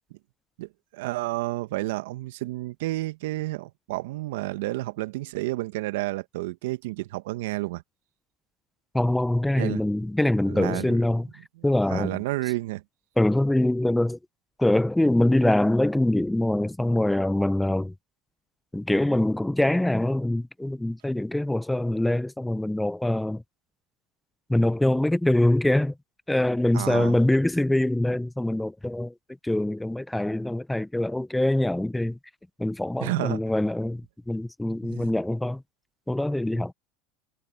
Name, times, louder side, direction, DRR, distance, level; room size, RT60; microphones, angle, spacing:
voice 1, 0.6-7.8 9.6-9.8 10.5-11.0 11.9-12.8 26.7-27.2 33.0-33.4 34.8-35.1, right 19 dB, 75° right, 1.7 m, -30 dB
voice 2, 8.9-11.3 11.6-12.2 13.2-14.2 14.6-17.9 18.7-23.4 24.5-25.9 26.3-29.1 29.4-32.2 32.6-35.6 36.1-36.7, left 1 dB, 5° left, 1.0 m, -24 dB
hypercardioid pair, 80°, 0 cm